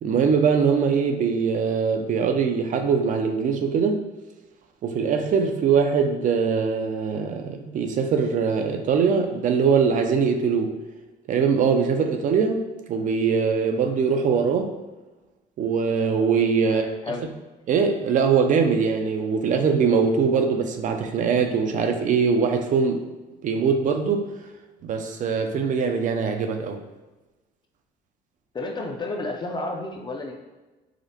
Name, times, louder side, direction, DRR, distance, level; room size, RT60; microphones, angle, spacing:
voice 1, 0.0-4.0 4.8-10.8 11.3-12.6 12.9-14.8 15.6-16.8 17.7-23.0 23.4-24.3 24.8-26.8, right 6 dB, 50° right, 5 dB, 0.4 m, -22 dB
voice 2, 16.6-17.3 28.5-30.3, left 2 dB, 25° left, 2 dB, 0.5 m, -31 dB
4.9 x 2.1 x 2.8 m, 1.1 s
cardioid pair, 110°, 17 cm